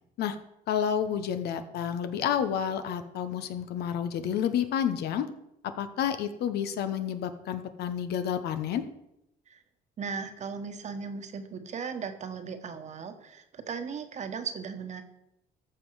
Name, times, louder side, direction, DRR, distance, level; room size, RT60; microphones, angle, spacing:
voice 1, 0.7-5.2 5.8-8.8, left 9 dB, 75° left, 10 dB, 1.0 m, -30 dB
voice 2, 10.0-15.0, right 5 dB, 45° right, 8 dB, 1.2 m, -37 dB
14.0 x 5.7 x 4.8 m, 0.84 s
cardioid pair, 110°, 17 cm